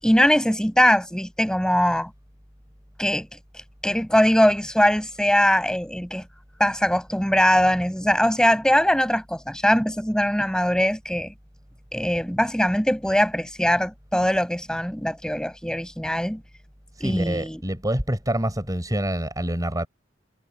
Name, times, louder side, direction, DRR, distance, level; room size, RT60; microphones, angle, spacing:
voice 1, 0.0-2.1 3.0-6.2 6.6-11.3 11.9-16.4 17.0-17.6, equal, 5° left, 7.5 m, -21 dB
voice 2, 17.0-19.9, right 1 dB, 20° right, 5.7 m, -26 dB
head